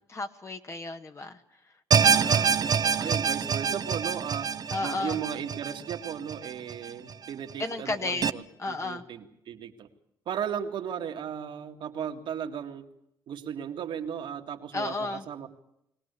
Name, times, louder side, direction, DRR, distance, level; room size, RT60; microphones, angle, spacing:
voice 1, 0.1-1.4 2.0-2.5 2.9-3.2 4.7-5.2 7.6-8.3 8.6-9.0 14.7-15.2, left 3 dB, 35° left, 7 dB, 1.6 m, -33 dB
sound 1, 1.9-7.1 7.5-7.6 8.2-8.3, right 6 dB, 50° right, 0.9 m, -26 dB
voice 2, 2.2-4.5 4.8-9.9 10.3-12.8 13.3-15.5, right 8 dB, 70° right, 5 dB, 2.2 m, -36 dB
22.5 x 17.5 x 8.3 m, 0.78 s
cardioid pair, 85°, 8 cm